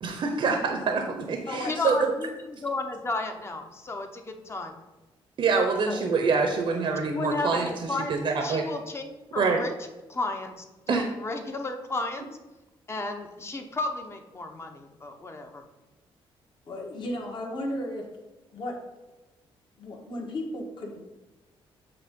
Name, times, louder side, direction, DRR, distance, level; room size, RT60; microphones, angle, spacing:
voice 1, 0.0-2.1 5.4-8.6 9.4-9.6 10.9-11.1, right 4 dB, 55° right, 4 dB, 0.8 m, -26 dB
voice 2, 1.7-4.8 5.9-6.1 7.0-8.1 8.4-9.7 10.1-12.2 12.9-15.6, left 3 dB, 25° left, 5 dB, 0.8 m, -33 dB
voice 3, 16.6-18.1 18.5-18.8 19.8-21.0, left 1 dB, 50° left, -1 dB, 1.6 m, -34 dB
8.0 x 2.8 x 5.3 m, 1.1 s
cardioid pair, 110°, 10 cm